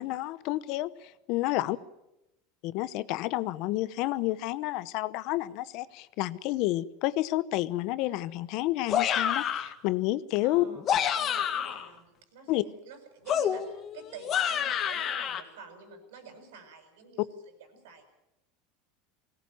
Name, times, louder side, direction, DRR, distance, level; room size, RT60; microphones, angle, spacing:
voice 1, 0.0-1.8 2.6-10.7 12.5-12.6, left 17 dB, 55° left, 16 dB, 0.9 m, -30 dB
sound 1, 8.9-9.7 10.7-11.9 13.3-15.4, left 9 dB, 35° left, 2.0 m, -28 dB
voice 2, 10.4-10.9 11.1-17.3 17.8-18.0, right 5 dB, 85° right, 6 dB, 7.3 m, -48 dB
21.0 x 18.0 x 9.3 m, 0.91 s
supercardioid pair, 140°, 0 cm